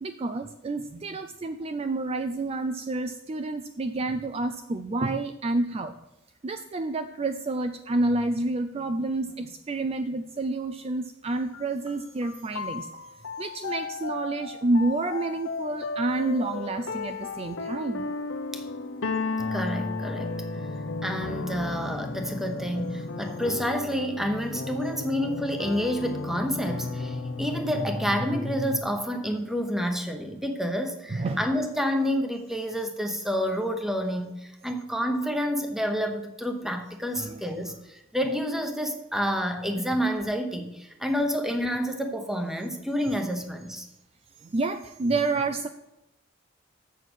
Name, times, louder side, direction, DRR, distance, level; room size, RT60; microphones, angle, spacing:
voice 1, 0.0-5.9 6.4-12.9 13.4-18.1 31.1-31.4 37.2-37.4 44.4-45.7, right 2 dB, 30° right, 8 dB, 0.4 m, -29 dB
sound 1, 11.5-28.8, left 3 dB, 85° left, 0.9 m, -34 dB
voice 2, 19.5-20.3 21.0-43.9, equal, ahead, 5 dB, 1.0 m, -29 dB
7.3 x 7.1 x 6.2 m, 0.93 s
head